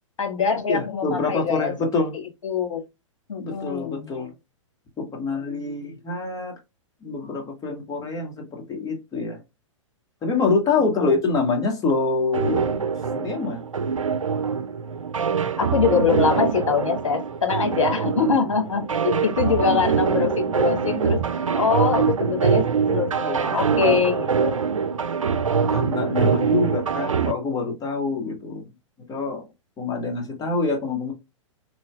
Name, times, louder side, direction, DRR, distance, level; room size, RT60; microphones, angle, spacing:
voice 1, 0.2-1.7 2.4-2.8 3.3-4.1 10.8-11.2 15.6-21.2 21.6-24.6, left 6 dB, 70° left, 1.3 m, -24 dB
voice 2, 0.7-2.1 3.4-4.3 5.0-6.5 7.0-9.4 10.2-12.8 13.1-13.6 19.5-19.9 23.3-23.9 25.7-28.6 29.1-29.4 29.8-31.1, left 4 dB, 20° left, 1.4 m, -26 dB
sound 1, 12.3-27.3, right 6 dB, 90° right, 0.4 m, -23 dB
3.9 x 3.1 x 2.3 m
figure-of-eight pair, 110°, 17 cm